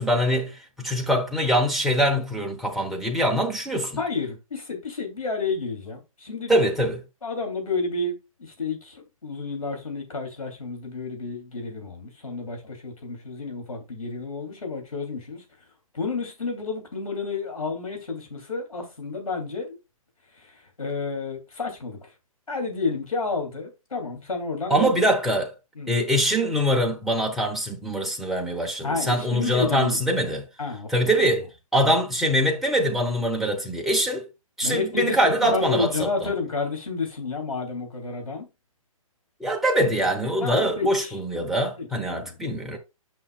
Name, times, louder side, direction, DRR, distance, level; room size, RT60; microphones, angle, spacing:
voice 1, 0.0-4.0 6.5-7.0 24.7-25.5 25.9-30.4 30.9-31.5 31.7-34.3 34.6-36.3 39.4-42.8, equal, ahead, 1.0 m, -23 dB
voice 2, 4.0-6.5 7.2-15.4 15.9-19.8 20.4-22.1 22.5-24.9 25.7-25.9 28.8-30.0 30.6-31.1 34.6-38.5 40.4-41.1 41.8-42.3, left 4 dB, 80° left, 3.0 m, -30 dB
8.7 x 5.7 x 2.3 m
figure-of-eight pair, 130°, 18 cm